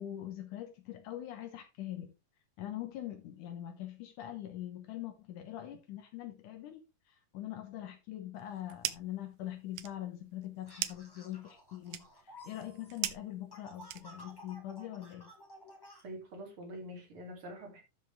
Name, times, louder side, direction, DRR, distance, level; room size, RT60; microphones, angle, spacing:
voice 1, 0.0-2.1 2.6-15.3, left 12 dB, 75° left, 2.5 m, -43 dB
sound 1, 8.4-9.2 9.5-14.4, right 14 dB, 85° right, 2.2 m, -41 dB
sound 2, 10.7-16.0, equal, 10° left, 1.1 m, -54 dB
voice 2, 16.0-17.8, equal, 40° right, 3.5 m, -45 dB
12.5 x 5.2 x 3.5 m
omnidirectional pair, 3.7 m